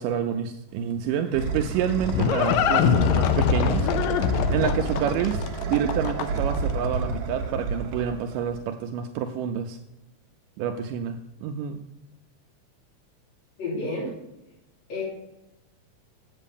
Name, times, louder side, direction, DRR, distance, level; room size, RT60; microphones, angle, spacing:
voice 1, 0.0-3.9 4.5-5.4 5.7-9.8 10.6-11.8, right 8 dB, 80° right, 5 dB, 2.2 m, -28 dB
sound 1, 0.7-8.7, right 4 dB, 65° right, 2.1 m, -30 dB
Livestock farm animals working animals, 1.5-6.6, left 8 dB, 85° left, 2.3 m, -23 dB
voice 2, 13.6-14.1 14.9-15.0, left 2 dB, 55° left, -9 dB, 4.5 m, -29 dB
8.3 x 7.5 x 5.2 m, 0.93 s
omnidirectional pair, 3.8 m